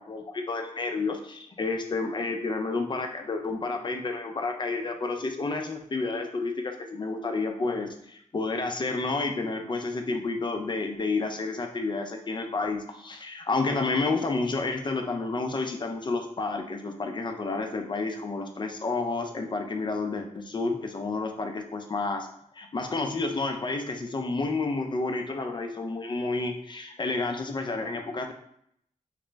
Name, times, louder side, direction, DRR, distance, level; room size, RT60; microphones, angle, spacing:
voice 1, 0.0-22.3 22.5-28.3, left 3 dB, 35° left, 4 dB, 0.5 m, -30 dB
4.9 x 2.1 x 3.3 m, 0.71 s
wide cardioid pair, 95°, 13 cm